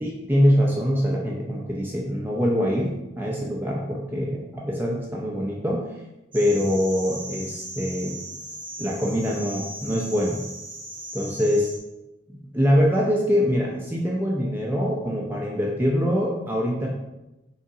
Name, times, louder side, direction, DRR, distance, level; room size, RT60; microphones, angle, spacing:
voice 1, 0.0-2.9 3.2-5.8 6.3-8.2 8.8-10.4 11.1-11.7 12.5-16.9, equal, 10° right, -3 dB, 0.7 m, -24 dB
sound 1, 6.3-11.8, right 1 dB, 30° right, 1.5 m, -38 dB
5.5 x 3.6 x 4.9 m, 0.97 s
head